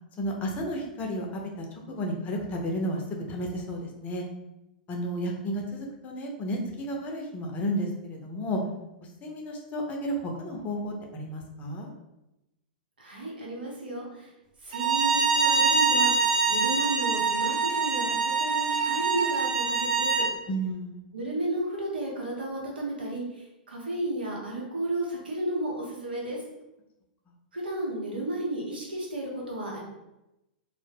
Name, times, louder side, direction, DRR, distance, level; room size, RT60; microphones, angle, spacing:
voice 1, 0.2-3.0 3.3-4.2 4.9-8.6 9.2-11.9 20.5-21.1, equal, 30° left, 1 dB, 0.5 m, -32 dB
voice 2, 13.0-14.3 14.6-20.3 21.1-26.4 27.5-29.8, right 1 dB, 90° right, -3 dB, 0.8 m, -33 dB
Bowed string instrument, 14.7-20.3, right 5 dB, 55° right, 0.6 m, -24 dB
2.1 x 2.0 x 3.2 m, 0.93 s
hypercardioid pair, 110°, 5 cm